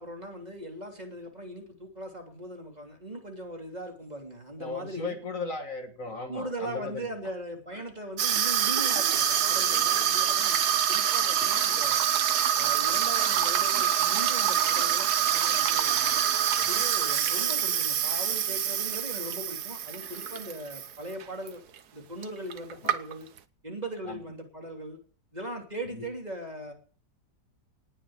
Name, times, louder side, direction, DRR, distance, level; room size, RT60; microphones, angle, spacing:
voice 1, 0.0-5.2 6.3-10.6 10.9-12.0 12.6-16.1 16.6-21.6 21.9-23.3 23.6-25.0 25.3-26.7, right 1 dB, 25° right, 2 dB, 3.3 m, -39 dB
voice 2, 4.6-7.1 7.7-7.8 16.6-16.8 24.1-24.2 25.9-26.1, left 3 dB, 50° left, 6 dB, 2.0 m, -36 dB
Water tap faucet / Sink (filling or washing), 8.2-20.9 21.2-21.5 22.2-22.3 22.5-23.4, right 9 dB, 65° right, 1.5 m, -26 dB
19.0 x 6.9 x 8.9 m, 0.43 s
omnidirectional pair, 1.8 m